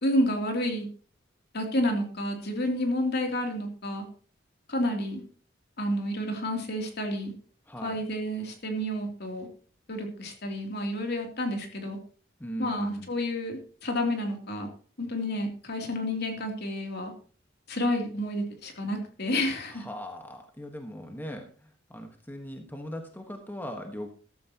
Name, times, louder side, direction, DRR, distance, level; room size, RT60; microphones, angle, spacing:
voice 1, 0.0-0.9 1.5-4.0 4.7-5.2 5.8-7.3 7.8-9.5 9.9-12.0 12.6-14.7 15.0-17.1 17.7-19.8, left 1 dB, 55° left, 3 dB, 3.0 m, -30 dB
voice 2, 7.7-8.0 12.4-13.1 19.7-24.1, equal, 10° left, 4 dB, 1.4 m, -39 dB
14.0 x 13.5 x 2.9 m, 0.41 s
head